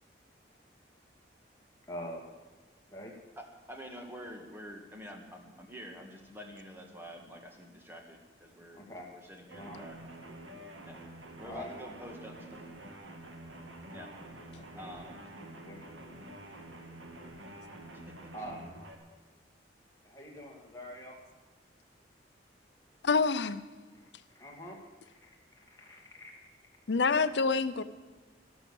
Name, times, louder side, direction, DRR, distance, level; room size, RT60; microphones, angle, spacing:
voice 1, 1.9-2.5 2.9-3.1 8.7-9.1 9.5-9.8 11.4-11.7 14.5-15.1 15.3-15.8 18.3-18.7 20.0-21.2 23.9-24.8 25.2-26.4, equal, 15° left, -1 dB, 2.4 m, -46 dB
voice 2, 3.7-8.8 9.1-9.9 10.9-11.0 11.4-12.7 13.9-14.1 14.8-15.2 17.9-18.0, equal, 10° right, 2 dB, 1.9 m, -47 dB
sound 1, 9.5-18.9, right 1 dB, 90° right, 2.0 m, -48 dB
voice 3, 23.0-23.6 26.9-27.8, left 4 dB, 70° left, 13 dB, 0.6 m, -27 dB
12.5 x 12.0 x 7.1 m, 1.3 s
head